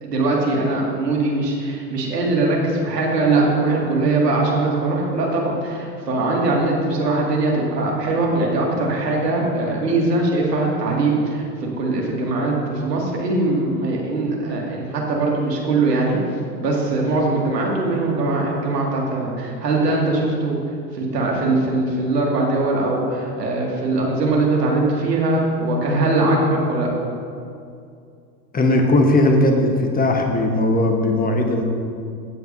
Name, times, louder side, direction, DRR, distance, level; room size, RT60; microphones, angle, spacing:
voice 1, 0.0-16.2 16.6-20.6 20.9-26.9, right 2 dB, 80° right, -2 dB, 2.2 m, -21 dB
voice 2, 28.5-31.6, left 1 dB, 20° left, 3 dB, 1.1 m, -18 dB
16.0 x 8.0 x 2.7 m, 2.4 s
hypercardioid pair, 85°, 48 cm